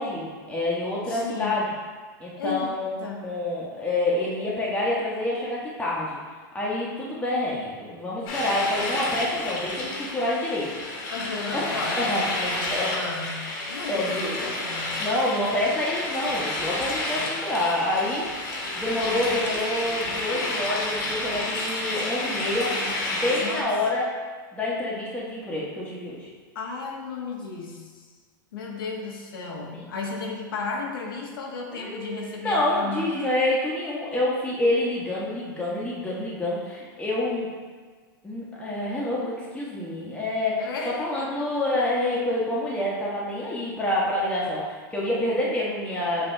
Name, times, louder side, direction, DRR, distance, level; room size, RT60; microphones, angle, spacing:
voice 1, 0.0-1.7 2.2-2.9 3.2-6.2 6.5-10.7 11.5-11.7 12.0-12.2 12.7-13.1 13.9-14.7 15.0-18.3 18.8-22.8 23.1-24.1 24.5-26.3 29.8-29.9 31.7-37.5 38.2-46.3, left 1 dB, 10° left, -6 dB, 1.0 m, -27 dB
voice 2, 1.1-1.6 2.4-2.7 3.0-3.2 11.1-15.0 23.4-23.8 26.5-28.1 28.5-33.1 40.6-41.3, left 4 dB, 80° left, 0 dB, 0.9 m, -34 dB
sound 1, 8.3-23.6, left 2 dB, 60° left, 1.2 m, -30 dB
6.7 x 2.6 x 2.6 m, 1.5 s
hypercardioid pair, 105°, 12 cm